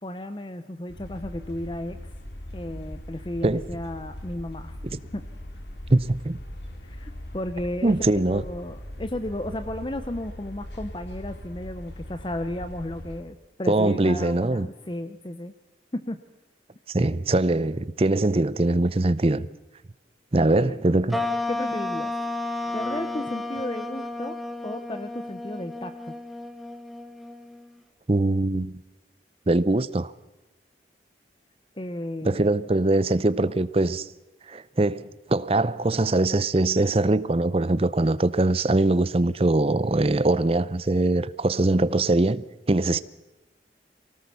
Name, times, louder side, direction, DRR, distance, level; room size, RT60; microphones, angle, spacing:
voice 1, 0.0-2.1 2.5-4.7 5.1-5.2 6.8-7.9 8.3-15.5 15.9-16.2 17.0-17.1 20.4-20.8 21.5-22.1 22.7-24.4 24.6-26.2 31.8-32.4, left 1 dB, 25° left, 0.8 m, -34 dB
sound 1, 0.9-13.2, left 1 dB, 80° left, 2.8 m, -40 dB
voice 2, 5.9-6.4 7.8-8.4 13.7-14.7 16.9-19.5 20.3-21.2 28.1-28.8 29.5-30.1 32.2-34.1 34.5-43.0, right 2 dB, 35° right, 0.6 m, -22 dB
sound 2, 21.1-27.8, left 2 dB, ahead, 1.2 m, -32 dB
24.0 x 18.0 x 6.9 m
head